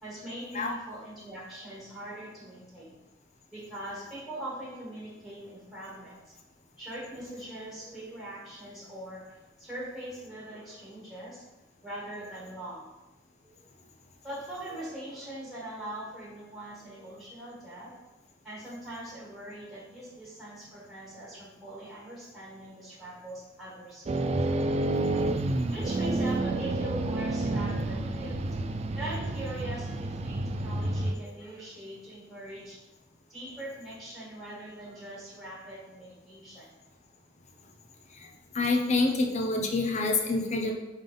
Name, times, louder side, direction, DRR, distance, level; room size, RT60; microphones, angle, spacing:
voice 1, 0.0-3.0 3.5-6.3 6.8-11.5 11.8-12.9 13.6-13.7 14.2-17.9 18.4-24.3 25.7-28.4 28.9-32.8 33.3-36.7, right 1 dB, ahead, -6 dB, 1.5 m, -42 dB
sound 1, 24.1-31.1, right 2 dB, 35° right, 0.3 m, -29 dB
voice 2, 38.5-40.7, left 3 dB, 35° left, 2 dB, 0.8 m, -27 dB
5.5 x 3.7 x 5.4 m, 1.0 s
head